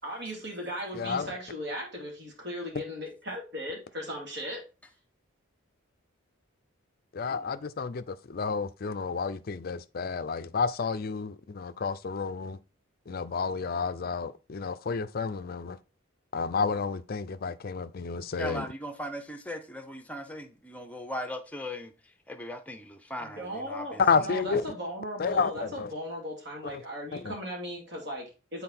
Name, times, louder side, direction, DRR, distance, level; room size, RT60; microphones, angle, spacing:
voice 1, 0.0-4.6 23.2-28.6, equal, 55° right, 2.8 m, -37 dB
voice 2, 0.9-1.3 7.1-12.6 13.1-15.8 16.3-18.6 24.0-24.6 25.2-25.9 26.6-26.8 27.1-27.4, left 5 dB, 45° left, 0.5 m, -30 dB
voice 3, 18.4-21.9 22.3-24.0, equal, 5° left, 0.7 m, -38 dB
7.7 x 4.2 x 4.3 m
head